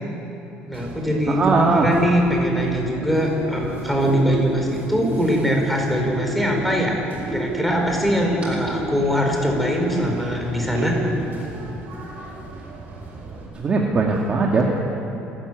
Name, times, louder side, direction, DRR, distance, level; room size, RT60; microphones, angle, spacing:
voice 1, 0.7-7.0 7.3-10.9, equal, ahead, 1 dB, 4.7 m, -22 dB
Bird, 0.7-13.5, right 1 dB, 45° right, 7.4 m, -31 dB
voice 2, 1.3-1.9 13.5-14.7, right 3 dB, 30° right, -1 dB, 2.3 m, -19 dB
28.0 x 14.0 x 9.5 m, 2.9 s
cardioid pair, 135°, 4 cm